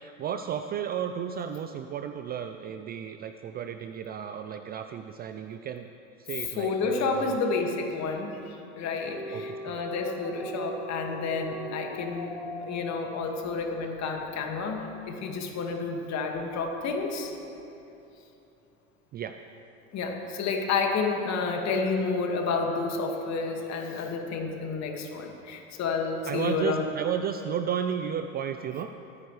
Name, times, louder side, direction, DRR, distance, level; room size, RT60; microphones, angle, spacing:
voice 1, 0.0-5.9 6.2-7.4 9.3-9.8 19.1-19.4 26.3-28.9, right 8 dB, 25° right, 8 dB, 0.4 m, -33 dB
voice 2, 6.6-12.3 12.6-17.3 19.9-26.9, left 4 dB, 45° left, 2 dB, 2.0 m, -30 dB
sound 1, 9.1-14.3, right 1 dB, 5° right, 1.9 m, -40 dB
21.0 x 9.6 x 3.3 m, 2.9 s
hypercardioid pair, 90°, 39 cm